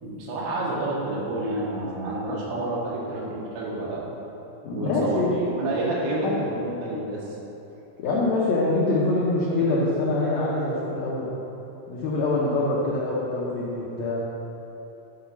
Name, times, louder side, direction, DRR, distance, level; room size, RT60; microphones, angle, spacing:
voice 1, 0.0-4.0 4.7-7.4, right 1 dB, 80° right, -5 dB, 3.3 m, -29 dB
voice 2, 4.6-5.4 6.2-6.4 8.0-11.3 11.9-14.3, left 2 dB, 80° left, -6 dB, 1.6 m, -24 dB
10.5 x 4.1 x 5.9 m, 3.0 s
omnidirectional pair, 4.5 m